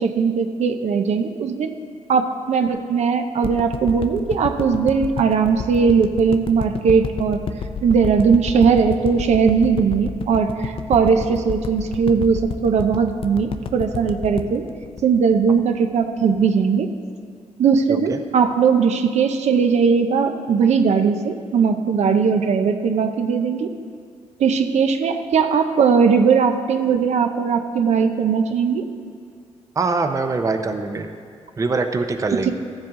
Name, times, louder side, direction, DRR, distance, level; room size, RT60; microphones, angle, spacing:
voice 1, 0.0-1.7 2.1-7.4 7.8-14.6 15.0-16.9 17.6-23.7 24.4-28.9 32.5-32.6, right 6 dB, 70° right, 6 dB, 0.6 m, -19 dB
sound 1, 3.4-15.8 16.2-16.3, left 6 dB, 50° left, 0.5 m, -30 dB
voice 2, 29.8-31.1 31.6-32.5, right 3 dB, 25° right, 6 dB, 0.6 m, -23 dB
14.5 x 7.3 x 3.7 m, 2.2 s
cardioid pair, 115°, 12 cm